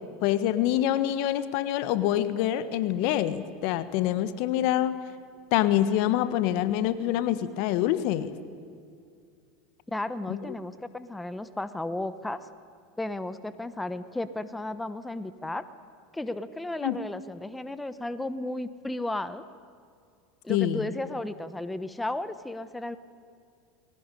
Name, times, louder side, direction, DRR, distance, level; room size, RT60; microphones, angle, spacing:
voice 1, 0.2-5.0 5.5-8.3 10.3-10.4 16.8-17.0 20.5-20.8, left 12 dB, 60° left, 13 dB, 1.3 m, -26 dB
voice 2, 9.9-12.5 13.0-15.6 16.1-19.4 20.4-23.0, left 2 dB, 10° left, 13 dB, 1.1 m, -34 dB
21.0 x 17.5 x 10.0 m, 2.3 s
hypercardioid pair, 90°, 0 cm